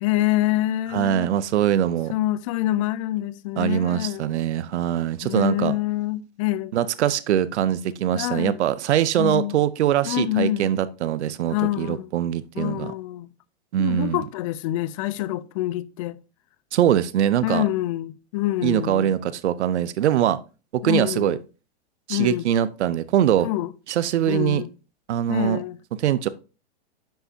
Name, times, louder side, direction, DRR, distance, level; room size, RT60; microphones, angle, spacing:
voice 1, 0.0-1.3 2.1-4.2 5.2-6.7 8.1-8.6 9.2-9.6 10.0-10.7 11.5-12.1 12.6-13.3 13.8-16.2 17.4-19.1 20.8-21.4 22.1-22.4 23.4-23.7 24.3-24.7 25.3-25.8, left 15 dB, 30° left, 0.4 m, -26 dB
voice 2, 0.9-2.1 3.6-5.7 6.7-12.9 13.7-14.2 16.7-17.7 18.6-20.4 20.7-21.4 22.1-23.5 23.9-24.6 25.1-25.6 26.0-26.3, right 11 dB, 85° right, 0.7 m, -22 dB
10.0 x 5.7 x 2.7 m
hypercardioid pair, 145°, 33 cm